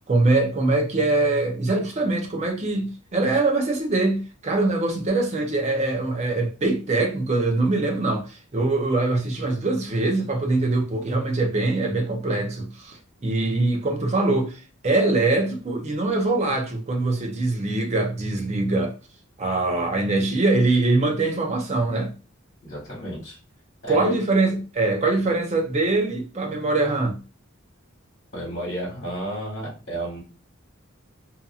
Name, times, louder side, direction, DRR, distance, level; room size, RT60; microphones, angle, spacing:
voice 1, 0.1-14.6 14.8-18.9 19.4-22.1 23.9-27.2, right 2 dB, 35° right, 0.6 m, -23 dB
voice 2, 22.6-23.4 23.8-24.1 28.3-30.2, right 1 dB, 45° left, 1.5 m, -32 dB
2.7 x 2.6 x 2.3 m
head